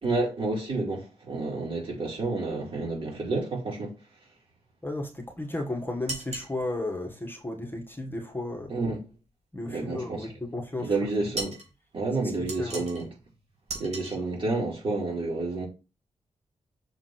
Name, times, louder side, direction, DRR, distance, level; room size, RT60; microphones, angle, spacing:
voice 1, 0.0-3.9 8.7-9.0 9.7-10.3 10.8-11.6 11.9-13.1 13.7-15.7, right 3 dB, 50° right, 4.4 m, -30 dB
voice 2, 4.8-8.7 9.5-10.9 12.6-12.8, left 2 dB, 20° left, 1.7 m, -34 dB
sound 1, 6.1-6.5 11.3-11.7 12.5-13.1 13.7-14.2, right 2 dB, 70° right, 3.4 m, -36 dB
6.5 x 3.8 x 6.1 m
cardioid pair, 75°, 11 cm